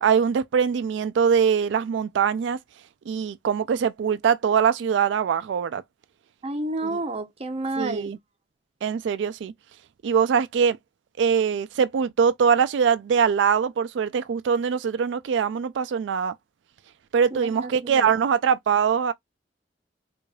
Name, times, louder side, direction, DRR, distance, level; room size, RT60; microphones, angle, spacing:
voice 1, 0.0-2.6 3.1-5.8 6.9-7.0 7.8-8.2 8.8-9.5 10.0-10.8 11.2-16.3 17.1-19.1, right 7 dB, 85° right, 0.3 m, -22 dB
voice 2, 6.4-8.2 17.3-18.1, right 2 dB, 35° right, 0.7 m, -30 dB
4.7 x 2.5 x 2.3 m
head